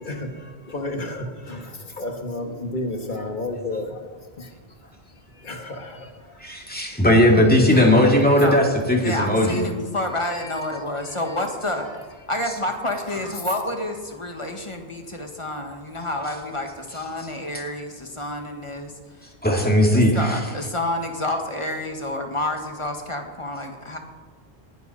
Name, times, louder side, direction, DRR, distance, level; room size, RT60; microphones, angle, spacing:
voice 1, 0.0-4.9 5.3-6.5 7.0-7.2 7.6-8.1 8.4-8.5 10.3-10.6 11.3-11.4 11.9-12.0 13.1-13.4, left 2 dB, 50° left, 1.8 m, -33 dB
voice 2, 6.4-9.7 19.4-20.4, left 1 dB, 10° left, 2.2 m, -17 dB
voice 3, 9.0-11.9 12.3-18.9 19.2-19.3 19.9-24.0, left 1 dB, 30° left, 1.7 m, -29 dB
20.0 x 10.5 x 4.1 m
omnidirectional pair, 1.1 m